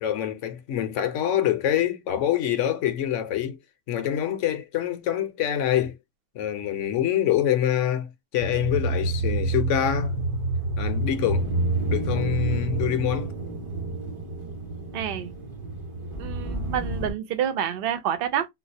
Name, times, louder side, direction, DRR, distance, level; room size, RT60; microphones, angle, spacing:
voice 1, 0.0-3.6 3.9-6.0 6.3-10.3 10.8-11.5 11.8-13.3, left 10 dB, 65° left, 0.9 m, -25 dB
sound 1, 8.4-17.1, right 2 dB, 25° right, 0.9 m, -28 dB
voice 2, 14.9-15.3 16.2-18.5, right 9 dB, 55° right, 0.7 m, -28 dB
3.7 x 2.4 x 2.6 m
omnidirectional pair, 1.5 m